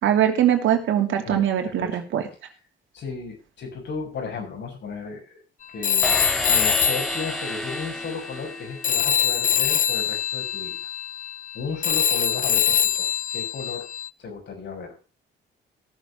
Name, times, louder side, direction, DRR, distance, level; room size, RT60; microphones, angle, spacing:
voice 1, 0.0-2.2, right 10 dB, 75° right, 4 dB, 2.9 m, -21 dB
voice 2, 2.9-5.4 5.7-10.8 11.5-13.9 14.2-15.0, left 5 dB, 65° left, 2 dB, 6.6 m, -34 dB
Telephone, 5.8-8.6 8.8-14.1, left 9 dB, 40° left, 0.5 m, -24 dB
sound 1, 6.0-9.2, right 1 dB, ahead, 2.5 m, -31 dB
17.0 x 7.1 x 6.0 m, 0.35 s
cardioid pair, 90°, 20 cm